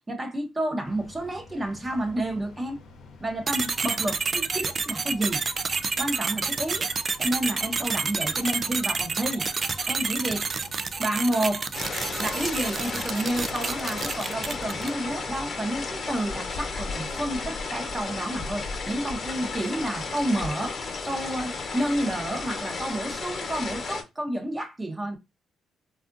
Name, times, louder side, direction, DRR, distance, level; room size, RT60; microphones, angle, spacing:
voice 1, 0.1-2.8 3.2-5.4 6.0-6.9 7.2-9.5 9.9-10.5 11.0-11.6 12.2-20.8 21.0-25.2, right 1 dB, 20° right, 0.8 m, -30 dB
sound 1, 0.8-15.5, left 3 dB, 70° left, 0.7 m, -48 dB
sound 2, 3.5-15.0, right 4 dB, 40° right, 0.3 m, -29 dB
sound 3, 11.7-24.0, left 4 dB, 45° left, 1.0 m, -33 dB
3.5 x 2.4 x 2.5 m
cardioid pair, 90°, 0 cm